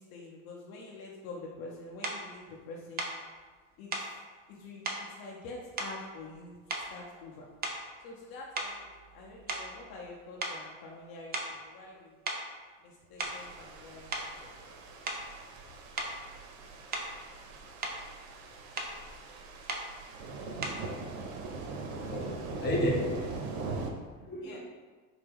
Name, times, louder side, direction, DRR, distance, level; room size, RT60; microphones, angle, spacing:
voice 1, 0.0-3.0 3.8-3.9 4.5-7.5 8.0-8.9 9.1-12.2 12.8-14.1 14.4-14.7 15.6-15.7 23.5-23.6 24.4-24.6, left 2 dB, 55° left, -2 dB, 0.7 m, -46 dB
sound 1, 2.0-2.2 3.0-3.2 3.9-4.1 4.8-5.1 5.8-6.4 6.7-7.1 7.6-8.0 8.5-10.1 10.4-10.6 11.3-11.6 12.3-12.5 13.0-13.5 14.1-14.3 15.1-15.3 16.0-16.2 16.9-17.2 17.6-18.0 18.8-19.0 19.7-19.9 20.6-20.9, right 2 dB, 25° right, 0.5 m, -36 dB
sound 2, 13.2-23.9, right 3 dB, 65° right, 0.7 m, -41 dB
voice 2, 22.1-23.4 24.2-24.6, left 1 dB, 25° left, -3 dB, 1.0 m, -32 dB
4.3 x 2.1 x 3.6 m, 1.4 s
hypercardioid pair, 85°, 43 cm